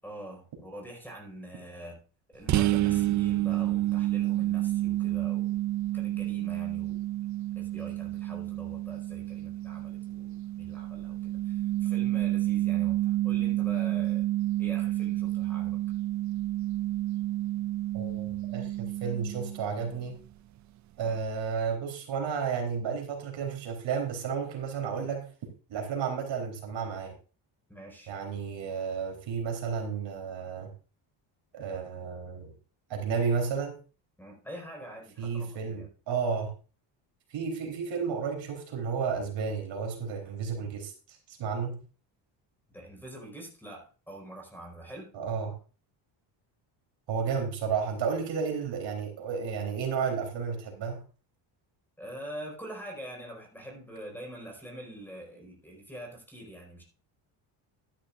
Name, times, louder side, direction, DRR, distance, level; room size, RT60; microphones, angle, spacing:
voice 1, 0.0-2.0 2.3-5.6 5.9-7.0 7.5-14.3 14.6-15.8 21.0-21.2 27.7-28.1 34.2-35.9 42.7-45.1 52.0-56.8, right 1 dB, 5° left, 1 dB, 4.9 m, -45 dB
sound 1, 2.5-20.0, right 15 dB, 40° right, 0.4 m, -29 dB
voice 2, 17.9-20.2 21.0-25.2 25.7-27.1 28.1-30.7 31.5-32.5 32.9-33.8 35.2-36.5 37.3-40.9 41.3-41.7 45.1-45.5 47.1-51.0, right 6 dB, 65° right, 2 dB, 3.8 m, -32 dB
12.5 x 11.5 x 2.5 m, 0.36 s
cardioid pair, 120°, 49 cm